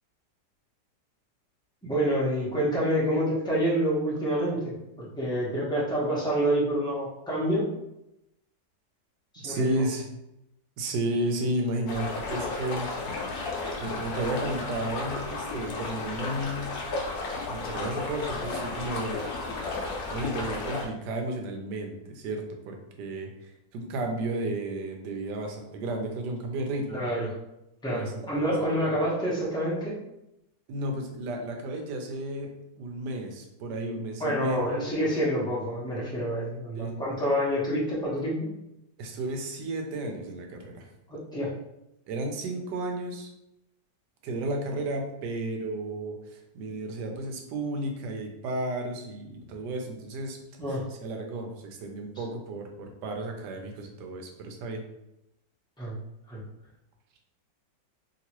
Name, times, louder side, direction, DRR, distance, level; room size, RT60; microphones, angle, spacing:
voice 1, 1.8-7.7 9.4-9.8 26.9-27.3 27.8-30.0 34.2-38.5 41.1-41.5 50.6-50.9 55.8-55.9 56.3-56.4, equal, 5° left, -7 dB, 0.4 m, -27 dB
voice 2, 9.4-10.1 10.8-12.9 13.5-16.7 17.5-19.2 19.8-27.0 27.9-29.0 30.7-32.5 32.8-34.9 36.7-36.9 39.0-40.9 42.1-43.3 44.2-50.4 50.7-54.8, right 1 dB, 75° right, 3 dB, 1.2 m, -33 dB
sound 1, 11.9-20.9, left 3 dB, 65° left, 1.0 m, -33 dB
2.9 x 2.9 x 2.9 m, 0.87 s
omnidirectional pair, 1.9 m